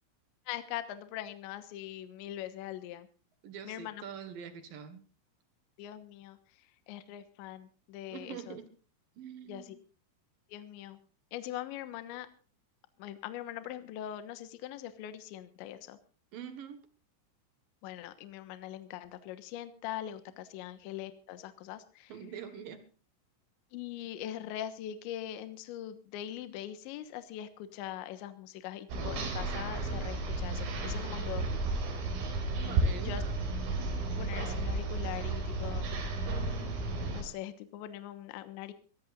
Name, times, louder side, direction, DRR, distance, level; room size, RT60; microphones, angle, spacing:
voice 1, 0.5-3.1 3.6-4.0 5.8-6.4 6.9-8.6 9.5-9.8 10.5-11.0 11.3-12.3 13.0-16.0 17.8-22.1 23.7-31.5 33.0-33.2 34.1-36.0 36.3-36.7 37.1-38.7, left 12 dB, 75° left, 10 dB, 3.2 m, -42 dB
voice 2, 3.4-5.0 8.1-8.7 9.2-9.8 16.3-16.8 22.1-22.8 32.6-33.3, right 8 dB, 60° right, 9 dB, 2.5 m, -44 dB
sound 1, 28.9-37.2, right 2 dB, 85° right, 6.9 m, -33 dB
23.0 x 17.0 x 2.5 m, 0.37 s
omnidirectional pair, 6.0 m